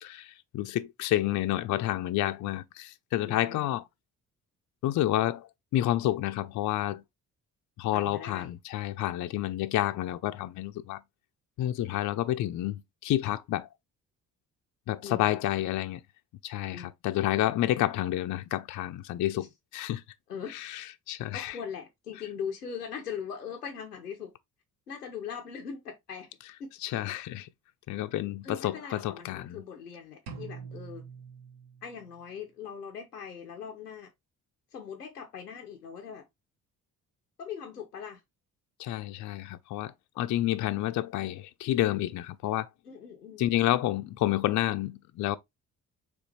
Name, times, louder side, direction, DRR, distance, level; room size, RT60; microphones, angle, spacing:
voice 1, 0.0-3.8 4.8-7.0 7.8-11.0 11.6-13.7 14.9-16.0 16.4-19.5 19.7-20.0 20.5-21.6 26.8-27.5 27.9-29.6 38.8-42.7 43.4-45.4, left 14 dB, 40° left, 0.5 m, -29 dB
voice 2, 3.2-3.7 7.9-8.5 15.0-15.3 16.7-16.9 19.4-19.5 20.3-20.7 21.3-24.3 24.9-26.3 26.6-26.7 28.4-31.1 31.8-34.1 34.7-36.3 37.4-38.2 42.8-43.5, left 7 dB, 90° left, 0.6 m, -40 dB
sound 1, 30.3-32.2, right 5 dB, 65° right, 1.0 m, -44 dB
5.1 x 3.3 x 3.1 m
figure-of-eight pair, 40°, 45 cm